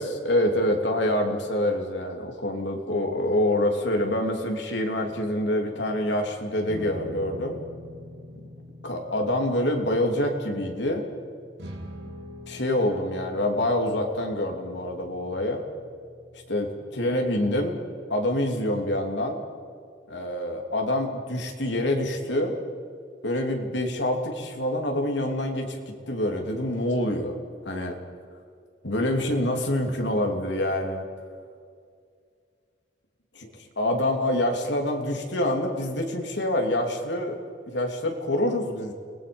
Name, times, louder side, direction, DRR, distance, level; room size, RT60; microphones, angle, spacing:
voice 1, 0.0-7.6 8.8-11.0 12.5-15.6 16.5-17.8 18.1-19.4 20.1-22.6 23.2-27.4 27.6-28.0 28.8-31.1 33.8-37.4 37.7-38.9, left 1 dB, 75° left, 2 dB, 3.1 m, -26 dB
sound 1, 6.7-17.6, equal, 65° right, 3.3 m, -45 dB
30.0 x 20.5 x 5.4 m, 2.1 s
head